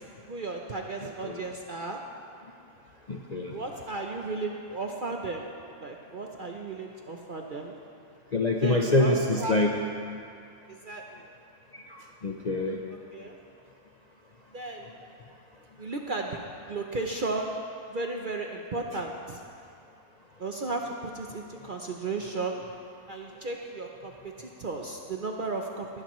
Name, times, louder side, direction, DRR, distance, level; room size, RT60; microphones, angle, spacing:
voice 1, 0.3-2.0 3.5-5.5 5.8-7.8 8.6-9.6 10.7-11.3 13.1-13.3 14.5-14.9 15.8-16.4 16.7-17.6 17.9-19.4 20.4-22.6 23.1-25.9, right 3 dB, 45° right, 1 dB, 0.7 m, -34 dB
voice 2, 1.0-1.4 3.1-3.6 8.3-9.7 11.7-12.8, left 2 dB, 45° left, 0 dB, 0.6 m, -26 dB
18.5 x 11.5 x 3.1 m, 2.5 s
omnidirectional pair, 1.6 m